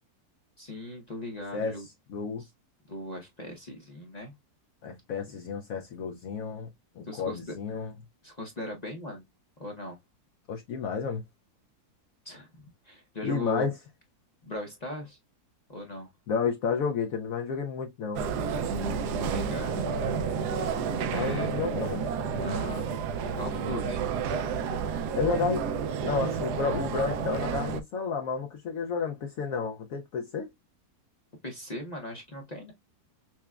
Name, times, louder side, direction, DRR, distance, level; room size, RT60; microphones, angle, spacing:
voice 1, 0.6-1.9 2.4-2.5 2.9-4.3 7.0-7.8 8.2-9.2 9.6-10.0 12.2-13.7 14.4-15.2 15.7-16.1 19.2-19.8 21.1-21.5 22.4-22.9 23.3-24.0 31.4-32.7, left 1 dB, 40° left, 0.6 m, -38 dB
voice 2, 1.5-2.4 4.8-6.7 7.0-7.9 10.5-11.2 13.2-13.7 16.3-18.3 21.1-22.1 25.1-30.5, left 5 dB, 70° left, 0.9 m, -31 dB
sound 1, 18.2-27.8, right 6 dB, 80° right, 1.1 m, -30 dB
5.8 x 2.2 x 2.3 m
omnidirectional pair, 1.7 m